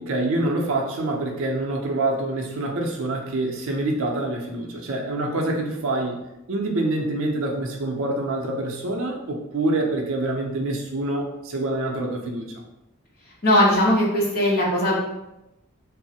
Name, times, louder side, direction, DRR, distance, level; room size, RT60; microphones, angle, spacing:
voice 1, 0.0-6.2 6.5-12.5, right 2 dB, 65° right, 1 dB, 0.5 m, -26 dB
voice 2, 13.4-14.9, left 1 dB, 45° left, -6 dB, 0.9 m, -19 dB
3.0 x 2.0 x 2.7 m, 0.92 s
head